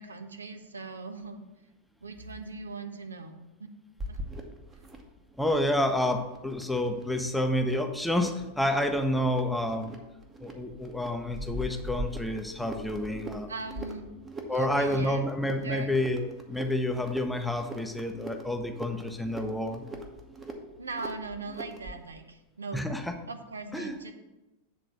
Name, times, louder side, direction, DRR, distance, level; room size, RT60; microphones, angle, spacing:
voice 1, 0.0-1.5 2.0-3.7 4.1-4.2 11.5-11.6 13.5-14.1 14.5-15.2 15.6-15.9 20.8-22.9 23.3-24.1, right 3 dB, 75° right, 7 dB, 0.6 m, -40 dB
sound 1, 4.0-22.0, right 1 dB, 20° right, 1.0 m, -42 dB
voice 2, 5.4-9.9 10.4-13.5 14.5-19.8 22.7-23.1 23.7-23.9, left 1 dB, ahead, 4 dB, 0.7 m, -29 dB
8.0 x 3.8 x 6.0 m, 1.0 s
figure-of-eight pair, 90°, 0 cm